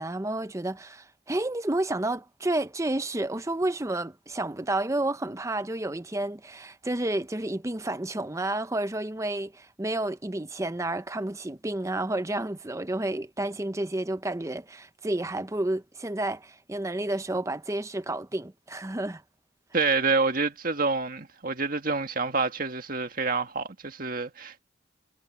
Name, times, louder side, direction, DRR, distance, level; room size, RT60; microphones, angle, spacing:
voice 1, 0.0-19.2, right 1 dB, 15° right, 0.7 m, -30 dB
voice 2, 19.7-24.6, right 4 dB, 45° right, 1.8 m, -27 dB
head